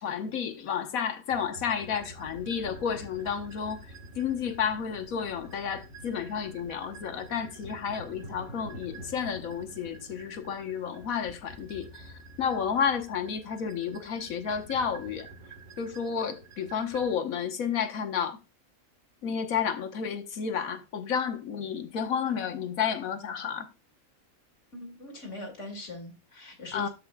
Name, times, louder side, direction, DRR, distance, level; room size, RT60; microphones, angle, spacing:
voice 1, 0.0-15.3 15.8-18.4 19.2-23.7 26.7-26.9, left 7 dB, 90° left, 1.5 m, -31 dB
sound 1, 1.3-17.1, right 2 dB, 70° right, 1.9 m, -48 dB
voice 2, 24.7-26.9, left 2 dB, 60° left, 2.4 m, -41 dB
12.5 x 5.0 x 2.2 m
omnidirectional pair, 1.4 m